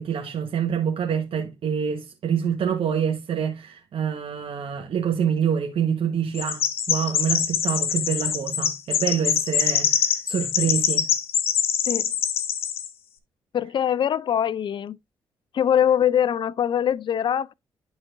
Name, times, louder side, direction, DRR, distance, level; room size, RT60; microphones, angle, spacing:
voice 1, 0.0-11.1, right 7 dB, 60° right, 1.2 m, -26 dB
Chirp tweet, 6.3-12.9, left 8 dB, 70° left, 1.0 m, -24 dB
voice 2, 13.5-15.0 15.5-17.5, left 9 dB, 50° left, 0.4 m, -22 dB
11.5 x 4.0 x 2.6 m
hypercardioid pair, 45°, 11 cm